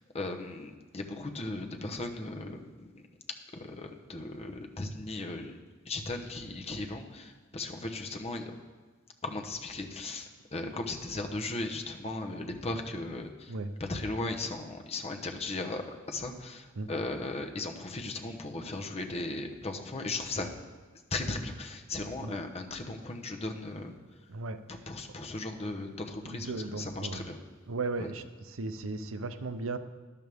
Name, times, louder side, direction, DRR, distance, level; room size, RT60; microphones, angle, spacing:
voice 1, 0.1-3.0 3.5-5.5 5.8-8.6 9.2-20.5 21.1-23.9 24.7-27.4 28.0-28.1, left 2 dB, 30° left, 4 dB, 1.0 m, -37 dB
voice 2, 24.3-24.6 26.3-27.2 27.7-28.2 28.6-29.8, right 3 dB, 80° right, 10 dB, 0.7 m, -35 dB
12.5 x 11.0 x 3.6 m, 1.4 s
head